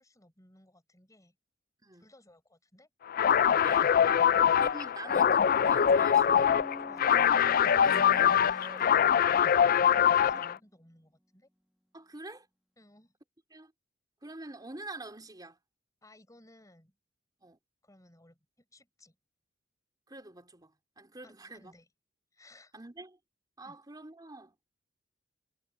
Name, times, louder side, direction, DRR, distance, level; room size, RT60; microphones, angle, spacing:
voice 1, 0.0-1.4 1.9-2.9 6.8-7.2 9.7-11.5 12.8-13.2 16.0-17.0 17.8-19.2 21.2-21.9 22.3-22.8 23.6-23.8, left 1 dB, 20° left, 6.0 m, -59 dB
sound 1, 3.1-10.5, left 8 dB, 50° left, 0.4 m, -23 dB
voice 2, 3.6-3.9 4.6-6.5 7.8-8.9 10.2-10.4 11.9-12.5 13.5-13.7 14.2-15.6 17.4-17.6 20.1-21.7 22.7-23.2 23.6-24.6, right 2 dB, 20° right, 3.4 m, -46 dB
sound 2, 5.7-10.3, equal, 5° right, 1.3 m, -47 dB
head